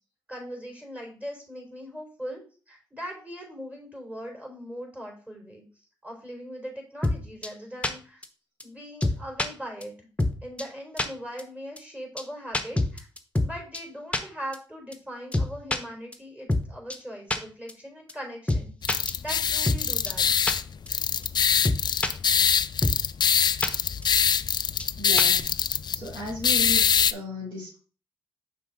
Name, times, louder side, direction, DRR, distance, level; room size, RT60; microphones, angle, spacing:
voice 1, 0.3-2.4 2.7-5.7 6.0-8.2 8.6-9.9 10.4-13.1 13.4-20.2, equal, 15° right, 0 dB, 3.7 m, -40 dB
sound 1, 7.0-7.2 7.4-7.5 7.8-7.9 8.2-8.3 8.6-8.7 9.0-9.5 9.8-9.9 10.2-10.3 10.6-10.7 11.0-11.1 11.4-11.5 11.8-11.9 12.2-12.3 12.5-13.5 13.7-13.8 14.1-14.2 14.5-14.6 14.9-15.0 15.3-15.8 16.1-16.2 16.5-16.6 16.9-17.0 17.3-17.4 17.7-17.8 18.1-18.2 18.5-18.6 18.9-19.8 20.1-20.2 20.5-20.6 20.9-21.0 21.2-21.3 21.6-22.1 22.4-22.5 22.8-23.0 23.2-23.3 23.6-23.7 24.0-24.1 24.4-24.5 24.8-24.9 25.2-25.4, left 2 dB, 15° left, 1.0 m, -25 dB
sound 2, 18.8-27.1, left 7 dB, 50° left, 0.3 m, -24 dB
voice 2, 25.0-25.6 25.9-27.8, left 1 dB, 50° right, -7 dB, 3.3 m, -35 dB
5.9 x 4.7 x 4.0 m, 0.38 s
supercardioid pair, 45°, 10 cm